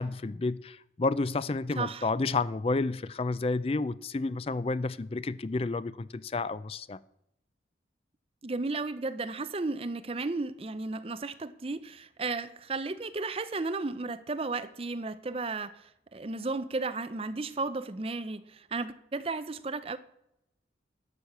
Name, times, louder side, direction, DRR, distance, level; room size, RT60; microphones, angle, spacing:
voice 1, 0.0-7.0, left 3 dB, 30° left, 0.4 m, -30 dB
voice 2, 1.8-2.1 8.4-20.0, right 3 dB, 30° right, 0.5 m, -34 dB
11.5 x 6.4 x 6.9 m
head